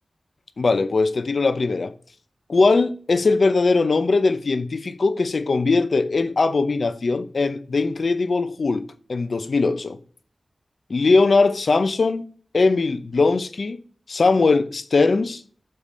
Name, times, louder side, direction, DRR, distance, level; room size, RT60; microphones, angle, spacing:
voice 1, 0.6-1.9 2.5-8.8 9.1-10.0 10.9-12.2 12.5-13.8 14.1-15.4, left 3 dB, 65° left, 0.7 m, -20 dB
6.6 x 5.2 x 4.3 m
wide cardioid pair, 80°, 0 cm